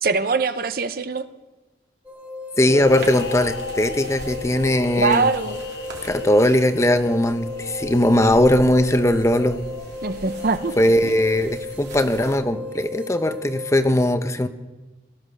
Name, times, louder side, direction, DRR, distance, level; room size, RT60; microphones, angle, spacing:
voice 1, 0.0-1.3 5.0-5.6 10.0-10.8 11.0-11.1, right 4 dB, 55° right, 11 dB, 0.7 m, -22 dB
sound 1, 2.1-13.8, left 1 dB, 10° right, 2.1 m, -36 dB
sound 2, 2.5-11.1, left 5 dB, 65° left, 0.5 m, -35 dB
voice 2, 2.6-5.3 6.0-9.6 10.8-14.5, left 1 dB, 15° left, 9 dB, 0.7 m, -19 dB
sound 3, 2.8-12.4, right 1 dB, 75° right, 3.1 m, -41 dB
17.5 x 12.0 x 6.5 m, 1.2 s
head